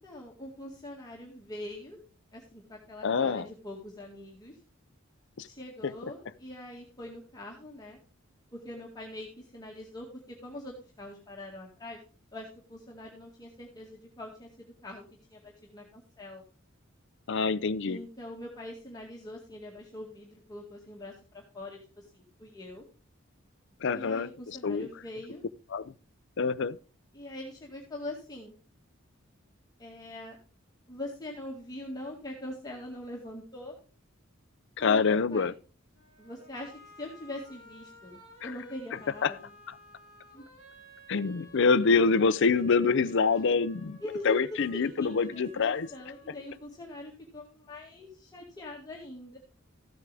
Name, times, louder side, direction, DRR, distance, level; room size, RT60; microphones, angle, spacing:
voice 1, 0.0-2.0 2.3-4.6 5.4-8.0 8.5-12.0 12.3-15.0 15.3-16.4 17.8-22.8 23.9-25.4 27.1-28.6 29.8-30.4 30.9-33.7 34.8-35.5 36.2-36.7 37.0-39.5 40.3-40.4 44.0-49.4, left 1 dB, 20° left, 2.0 m, -43 dB
voice 2, 3.0-3.4 5.4-5.5 17.3-18.0 23.8-24.3 24.6-24.9 25.7-25.9 26.4-26.8 34.8-35.5 38.4-38.5 39.2-39.3 41.1-44.0 44.3-45.9, left 4 dB, 65° left, 0.5 m, -25 dB
sound 1, 35.9-46.9, right 1 dB, 70° right, 6.9 m, -55 dB
14.5 x 8.4 x 3.4 m
head